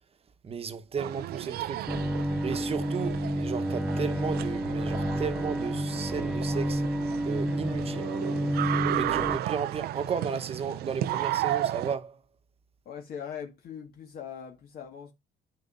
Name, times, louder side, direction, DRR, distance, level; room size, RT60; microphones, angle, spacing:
voice 1, 0.4-1.9 2.4-6.8 7.3-8.1 8.9-12.2, right 6 dB, 35° right, 1.1 m, -34 dB
sound 1, 1.0-11.9, right 13 dB, 70° right, 0.5 m, -34 dB
Bowed string instrument, 1.9-9.4, equal, 5° right, 0.5 m, -30 dB
voice 2, 9.0-9.6 12.9-15.1, left 8 dB, 65° left, 1.8 m, -41 dB
10.5 x 5.2 x 2.6 m
cardioid pair, 110°, 17 cm